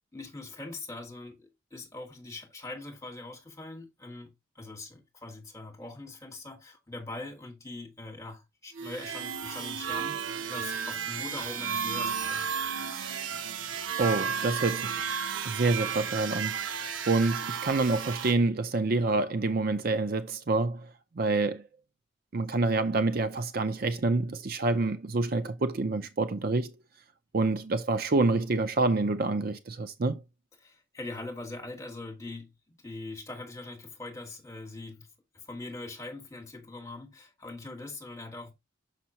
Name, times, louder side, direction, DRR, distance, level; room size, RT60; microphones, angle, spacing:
voice 1, 0.1-12.5 30.6-32.5 32.8-35.1 35.3-38.5, left 2 dB, 15° left, 2.1 m, -42 dB
sound 1, 8.7-18.3, right 7 dB, 85° right, 0.7 m, -33 dB
voice 2, 14.0-15.0 15.4-16.6 17.1-20.8 21.2-21.6 22.3-26.7 27.3-30.2, right 3 dB, 50° right, 0.6 m, -27 dB
6.1 x 5.8 x 2.8 m
head